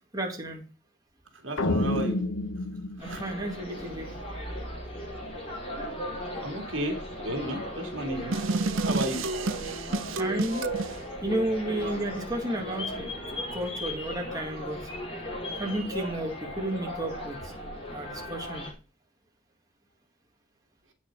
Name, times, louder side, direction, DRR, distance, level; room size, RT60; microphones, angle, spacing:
voice 1, 0.1-0.6 3.0-4.2 9.2-9.3 9.9-10.6 11.2-14.8 15.6-17.5 17.9-18.7, right 1 dB, 20° right, 1 dB, 2.0 m, -32 dB
voice 2, 1.4-2.2 3.0-3.2 6.4-7.0 7.2-8.4 8.8-9.2, right 1 dB, 70° right, 4 dB, 2.4 m, -32 dB
sound 1, 1.6-4.0, left 2 dB, 90° left, 1.0 m, -30 dB
sound 2, 3.0-18.7, left 1 dB, 30° left, 5.5 m, -37 dB
sound 3, 8.3-11.0, right 3 dB, 90° right, 0.7 m, -29 dB
8.9 x 6.3 x 5.3 m, 0.34 s
head